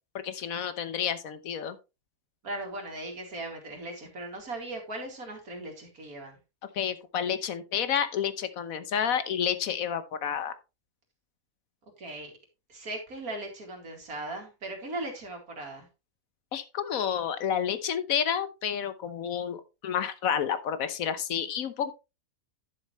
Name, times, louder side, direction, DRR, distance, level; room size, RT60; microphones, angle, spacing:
voice 1, 0.2-1.8 6.7-10.6 16.5-21.9, left 8 dB, 75° left, 11 dB, 1.3 m, -30 dB
voice 2, 2.4-6.4 12.0-12.3 12.7-15.9, right 2 dB, 85° right, 2 dB, 2.9 m, -38 dB
11.0 x 6.9 x 3.1 m, 0.27 s
omnidirectional pair, 1.5 m